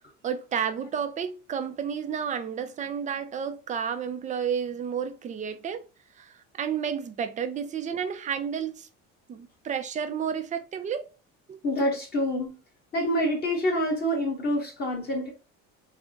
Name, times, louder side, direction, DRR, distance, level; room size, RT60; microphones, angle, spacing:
voice 1, 0.2-5.9 6.1-8.9 9.3-11.1 11.5-11.6, right 7 dB, 25° right, 0.4 m, -31 dB
voice 2, 11.6-12.5 12.9-15.3, equal, 30° left, 1.2 m, -26 dB
3.5 x 2.1 x 3.7 m
cardioid pair, 145°, 33 cm